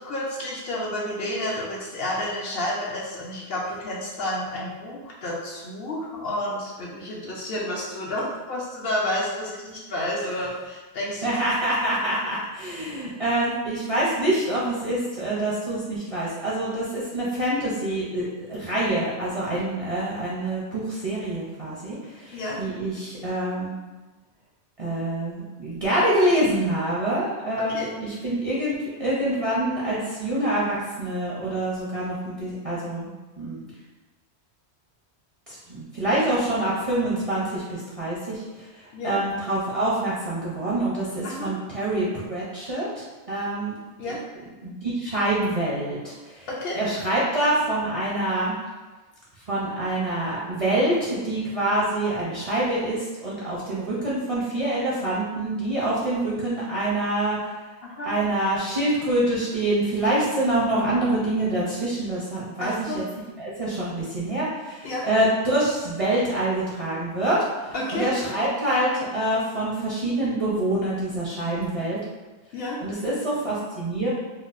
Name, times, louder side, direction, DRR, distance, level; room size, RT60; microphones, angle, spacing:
voice 1, 0.0-11.4 22.3-22.6 27.7-27.9 38.9-39.2 41.2-41.5 44.0-44.2 46.5-46.8 57.8-58.1 62.6-63.0 64.8-65.1 67.7-68.1 72.5-72.8, left 1 dB, 65° left, -4 dB, 0.8 m, -30 dB
voice 2, 11.2-23.8 24.8-33.1 33.4-33.7 35.5-43.7 44.1-44.2 44.6-46.5 46.7-48.5 49.5-57.5 58.0-63.0 63.4-67.4 67.6-72.0 72.8-74.1, right 1 dB, 40° right, -8 dB, 0.5 m, -26 dB
4.3 x 2.0 x 2.4 m, 1.2 s
omnidirectional pair, 1.2 m